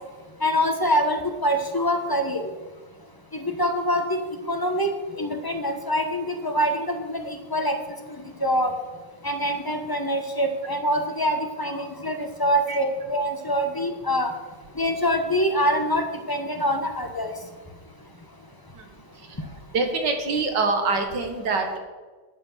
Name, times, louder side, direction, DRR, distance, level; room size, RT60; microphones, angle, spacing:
voice 1, 0.4-2.4 3.3-4.2 4.5-4.9 5.1-7.2 7.5-7.7 8.4-8.7 9.2-14.3 14.8-17.3, equal, 20° left, 5 dB, 0.7 m, -24 dB
voice 2, 19.7-21.8, right 3 dB, 70° right, 5 dB, 2.1 m, -24 dB
9.6 x 8.6 x 7.2 m, 1.3 s
omnidirectional pair, 2.0 m